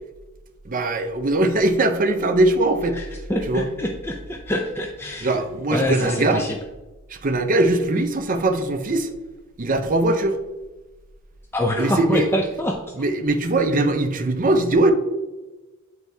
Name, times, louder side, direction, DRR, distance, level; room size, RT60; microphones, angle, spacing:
voice 1, 0.6-3.0 3.5-3.6 5.2-6.4 7.1-9.1 9.6-10.4 11.8-12.3 13.0-14.9, right 2 dB, 40° right, 6 dB, 0.6 m, -20 dB
voice 2, 2.9-5.4 5.7-6.6 11.5-12.8, left 1 dB, 10° left, 1 dB, 0.4 m, -25 dB
8.1 x 4.6 x 2.7 m, 1.2 s
head